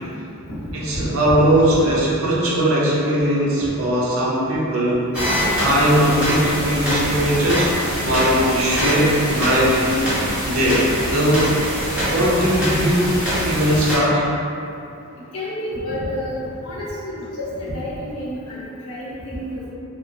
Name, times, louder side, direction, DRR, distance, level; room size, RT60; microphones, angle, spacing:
voice 1, 0.7-5.1 5.5-7.7 8.0-10.0 10.5-11.4 11.9-14.2, equal, 65° right, -6 dB, 0.6 m, -19 dB
sound 1, 5.1-14.0, equal, 5° right, 0.7 m, -24 dB
voice 2, 15.3-19.6, left 1 dB, 75° left, -7 dB, 0.6 m, -29 dB
2.7 x 2.0 x 2.5 m, 2.7 s
head